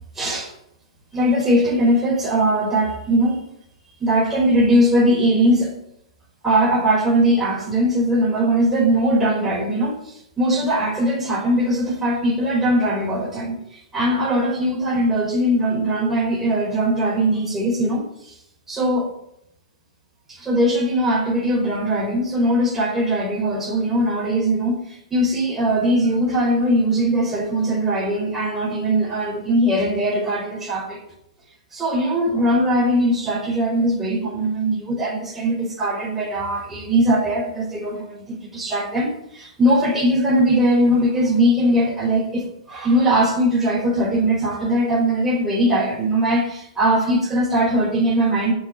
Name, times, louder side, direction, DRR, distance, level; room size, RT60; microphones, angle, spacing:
voice 1, 0.1-0.5 1.1-3.4 4.0-5.8 6.4-18.4 18.7-19.1 20.3-31.0 31.7-48.5, right 1 dB, 10° right, -3 dB, 4.8 m, -20 dB
13.5 x 6.7 x 9.0 m, 0.77 s
figure-of-eight pair, 110°, 3 cm